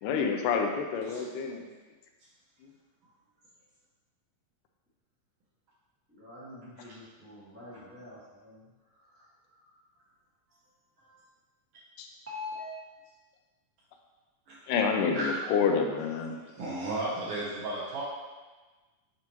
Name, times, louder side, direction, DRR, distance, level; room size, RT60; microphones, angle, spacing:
voice 1, 0.0-1.7 12.0-12.1 14.7-16.4, left 6 dB, 80° left, 3 dB, 2.1 m, -28 dB
voice 2, 6.1-9.8 12.3-12.7, left 3 dB, 10° right, -9 dB, 0.6 m, -45 dB
voice 3, 16.5-18.0, right 2 dB, 75° right, -6 dB, 1.3 m, -35 dB
7.6 x 4.6 x 3.0 m, 1.3 s
omnidirectional pair, 3.9 m